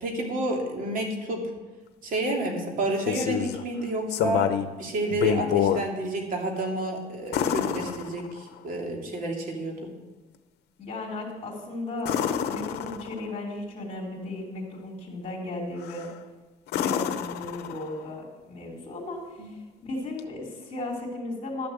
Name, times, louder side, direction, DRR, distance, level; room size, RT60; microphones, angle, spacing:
voice 1, 0.0-1.5 2.0-4.5 4.8-9.9 19.4-19.5, right 1 dB, 55° right, 1 dB, 2.7 m, -30 dB
sound 1, 2.8-3.6 4.1-4.7 5.1-5.9 7.3-8.6 12.0-13.3 15.8-16.2 16.7-18.1 20.2-20.3, left 9 dB, 75° left, 0.8 m, -28 dB
voice 2, 10.8-16.1 16.7-21.7, left 2 dB, 35° left, -3 dB, 3.2 m, -35 dB
12.0 x 6.9 x 7.8 m, 1.2 s
cardioid pair, 110°, 17 cm